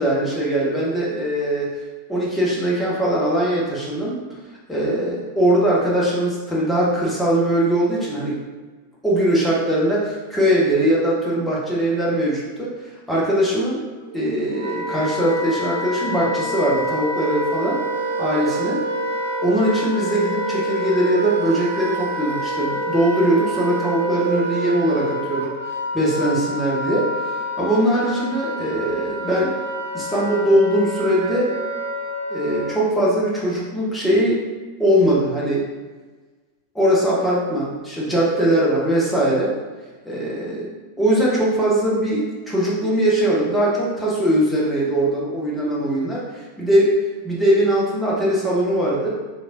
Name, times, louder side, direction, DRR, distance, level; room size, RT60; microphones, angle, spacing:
voice 1, 0.0-1.7 2.1-4.2 4.7-8.4 9.0-12.7 13.1-13.8 14.1-17.8 18.2-18.8 19.4-25.5 25.9-27.1 27.6-29.5 29.9-31.5 32.3-34.4 34.8-35.7 36.7-39.5 40.0-40.7 41.0-46.9 47.2-49.1, right 1 dB, 5° left, -6 dB, 0.9 m, -20 dB
Wind instrument woodwind instrument, 14.1-32.9, right 1 dB, 80° right, 0.4 m, -27 dB
3.0 x 2.7 x 2.5 m, 1.3 s
figure-of-eight pair, 90°, 0 cm